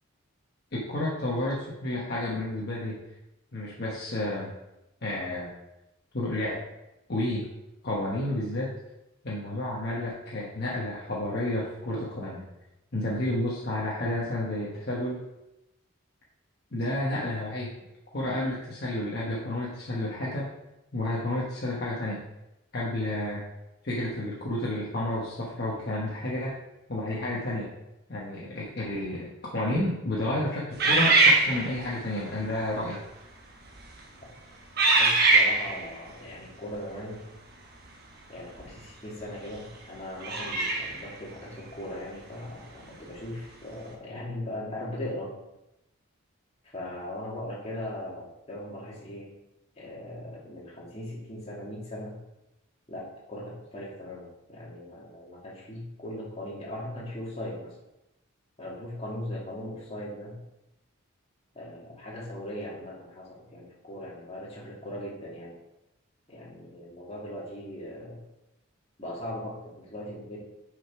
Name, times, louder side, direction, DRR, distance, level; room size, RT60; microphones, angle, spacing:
voice 1, 0.7-3.0 3.5-4.5 5.0-5.5 6.1-6.6 7.1-7.4 7.8-8.7 9.2-12.5 12.9-15.2 16.7-17.7 18.1-20.5 20.9-22.2 22.7-23.4 23.8-26.6 26.9-27.7 28.1-33.0, left 1 dB, 50° left, -5 dB, 1.1 m, -31 dB
sound 1, 30.8-32.0 32.8-33.0 33.7-34.0 34.8-35.9 38.6-38.7 40.2-41.1, right 3 dB, 45° right, 1.0 m, -22 dB
voice 2, 35.0-37.2 38.3-45.3 46.7-49.3 49.8-52.2 52.9-57.7 58.6-60.4 61.5-65.6 66.3-68.2 69.0-70.4, left 1 dB, 30° left, -5 dB, 2.1 m, -39 dB
6.4 x 5.1 x 4.8 m, 0.91 s
head